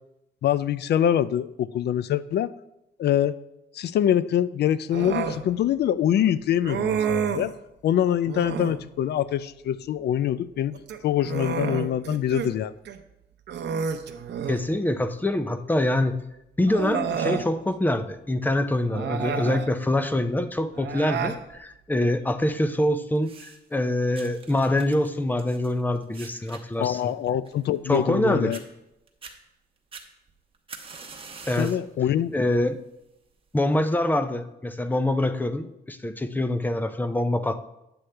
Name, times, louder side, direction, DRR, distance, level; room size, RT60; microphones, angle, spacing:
voice 1, 0.4-2.5 3.0-3.4 3.7-7.5 7.8-10.8 11.0-12.7 26.8-28.6 31.6-32.3, left 10 dB, 70° left, 16 dB, 0.4 m, -24 dB
Human voice, 4.9-5.4 6.6-7.5 8.3-8.8 10.7-12.5 12.9-13.0 13.5-14.7 15.9-16.0 16.7-17.5 18.9-19.7 20.8-21.4, right 7 dB, 80° right, 0.7 m, -29 dB
voice 2, 14.5-16.2 16.6-27.1 27.9-28.5 31.5-31.7 32.3-32.8 33.5-37.7, left 1 dB, 10° left, 10 dB, 0.4 m, -25 dB
sound 1, 23.2-23.8 24.1-28.2 28.5-28.6 29.1-29.4 29.9-31.9 32.3-32.7 33.5-33.6, right 4 dB, 30° right, 0.9 m, -45 dB
9.9 x 7.9 x 3.3 m, 0.86 s
wide cardioid pair, 155°, 18 cm